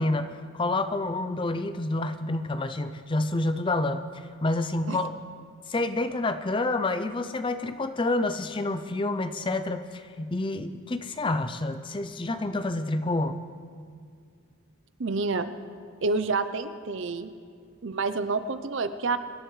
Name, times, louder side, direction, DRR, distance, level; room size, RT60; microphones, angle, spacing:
voice 1, 0.0-5.2 5.7-13.4, left 2 dB, 25° left, 10 dB, 0.5 m, -28 dB
voice 2, 15.0-15.5 16.0-17.3 17.8-19.2, right 3 dB, 60° right, 11 dB, 0.6 m, -28 dB
25.0 x 11.0 x 3.2 m, 2.1 s
head